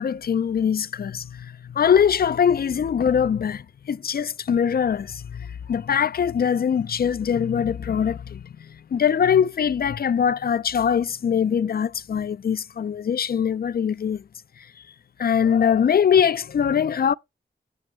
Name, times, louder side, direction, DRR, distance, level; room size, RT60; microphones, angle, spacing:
voice 1, 0.0-14.2 15.2-17.1, left 7 dB, 50° left, 0.4 m, -22 dB
8.8 x 7.6 x 3.1 m
wide cardioid pair, 95°, 20 cm